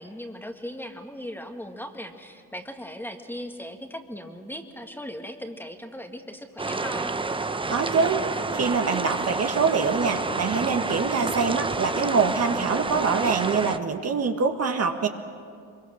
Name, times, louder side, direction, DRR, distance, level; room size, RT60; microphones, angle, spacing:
voice 1, 0.0-7.1, equal, 5° left, 4 dB, 1.8 m, -38 dB
sound 1, 6.6-13.8, right 3 dB, 15° right, 0.8 m, -29 dB
voice 2, 7.7-8.2 8.5-15.1, right 5 dB, 40° right, 5 dB, 1.6 m, -24 dB
24.0 x 23.0 x 6.4 m, 2.3 s
supercardioid pair, 85°, 37 cm